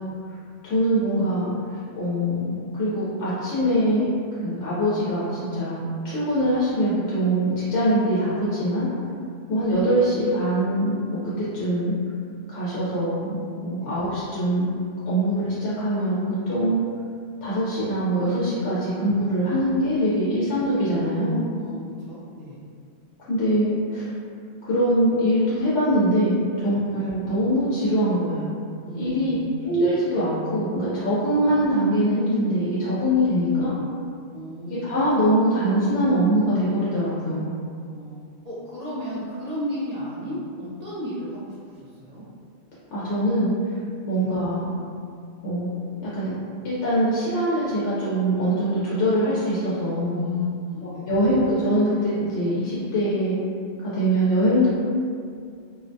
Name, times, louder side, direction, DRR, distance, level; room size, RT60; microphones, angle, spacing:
voice 1, 0.6-1.5 2.0-4.1 4.4-8.9 9.5-11.9 12.5-14.7 15.1-16.8 17.4-21.4 23.3-24.1 24.6-28.5 28.9-33.7 34.6-37.5 42.9-43.5 44.1-44.7 45.4-46.3 46.6-50.2 51.1-53.4 53.8-54.7, equal, 85° left, -10 dB, 1.0 m, -23 dB
voice 2, 21.6-22.6 26.9-27.1 28.8-29.5 31.4-31.6 33.4-33.7 34.3-34.9 37.9-42.2 44.2-44.3 50.2-51.2, left 1 dB, 50° right, -9 dB, 0.5 m, -34 dB
2.5 x 2.1 x 2.5 m, 2.3 s
omnidirectional pair, 1.2 m